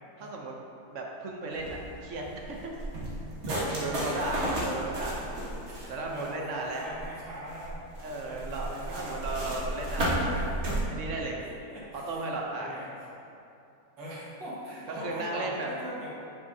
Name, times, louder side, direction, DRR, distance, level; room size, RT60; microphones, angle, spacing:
voice 1, 0.2-0.5 0.9-2.9 3.4-5.3 5.9-6.8 8.0-10.5 10.9-11.4 12.1-12.7 14.9-15.7, right 2 dB, 60° right, 0 dB, 0.8 m, -35 dB
sound 1, 1.5-10.8, right 1 dB, 40° right, 1.4 m, -33 dB
voice 2, 3.8-4.3 4.8-5.1 5.7-7.8 8.2-9.3 9.6-10.6 11.5-12.0 12.4-12.9 14.0-16.1, equal, 80° right, -7 dB, 2.3 m, -42 dB
9.4 x 5.5 x 2.7 m, 2.7 s
omnidirectional pair, 2.0 m